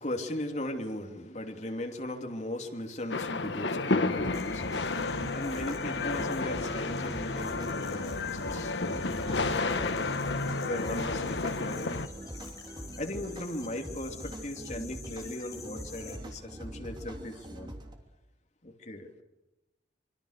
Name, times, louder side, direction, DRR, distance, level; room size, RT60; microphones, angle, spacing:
voice 1, 0.0-10.2 10.7-11.9 13.0-17.7 18.6-19.2, left 1 dB, 40° left, 3 dB, 2.9 m, -38 dB
sound 1, 3.1-12.1, left 3 dB, 90° left, 1.2 m, -31 dB
sound 2, 4.2-17.9, right 1 dB, 25° right, 3.1 m, -43 dB
sound 3, 4.3-16.2, left 5 dB, 20° left, 5.6 m, -50 dB
26.0 x 24.5 x 6.7 m, 1.0 s
head